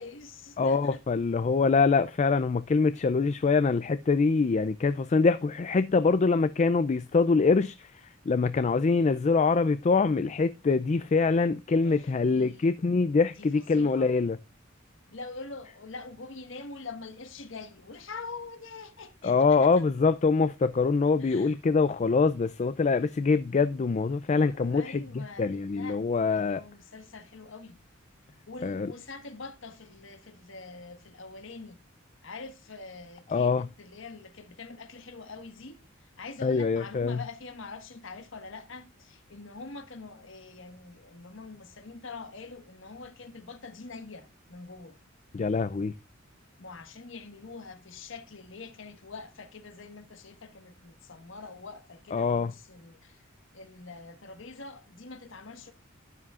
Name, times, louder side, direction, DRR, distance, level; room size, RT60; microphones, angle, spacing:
voice 1, 0.0-1.0 11.8-12.8 13.3-14.1 15.1-19.8 21.2-21.5 24.4-27.8 28.5-31.8 32.2-45.0 46.6-53.3 53.5-55.7, left 3 dB, 70° left, 1.5 m, -44 dB
voice 2, 0.6-7.9 8.3-14.4 19.2-26.6 28.6-28.9 33.3-33.7 36.4-37.2 45.3-45.9 52.1-52.5, left 4 dB, 35° left, 0.4 m, -24 dB
12.5 x 9.9 x 2.4 m
head